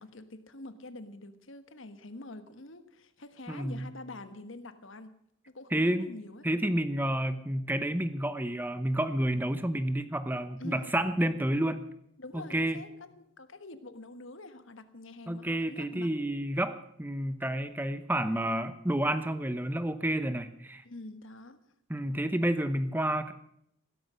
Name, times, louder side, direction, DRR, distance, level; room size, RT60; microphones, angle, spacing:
voice 1, 0.0-5.1 5.5-6.5 10.6-10.9 12.2-16.1 20.8-21.6, left 2 dB, 65° left, 11 dB, 1.3 m, -46 dB
voice 2, 3.5-3.9 5.7-6.1 6.4-11.8 12.3-12.8 15.3-20.8 21.9-23.3, right 1 dB, 10° right, 11 dB, 0.8 m, -30 dB
15.5 x 13.5 x 6.4 m, 0.74 s
head